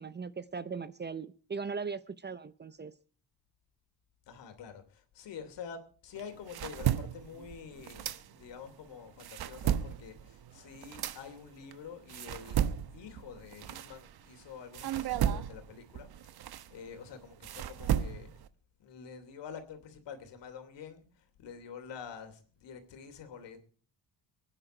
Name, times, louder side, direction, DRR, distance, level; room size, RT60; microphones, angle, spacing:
voice 1, 0.0-2.9, right 5 dB, 25° right, 0.7 m, -39 dB
voice 2, 4.3-12.7 12.9-18.3 18.8-23.6, left 7 dB, 70° left, 3.2 m, -47 dB
sound 1, 6.2-8.7 9.1-14.4 14.7-18.5, right 10 dB, 55° right, 1.0 m, -34 dB
24.0 x 10.0 x 4.5 m
cardioid pair, 105°, 44 cm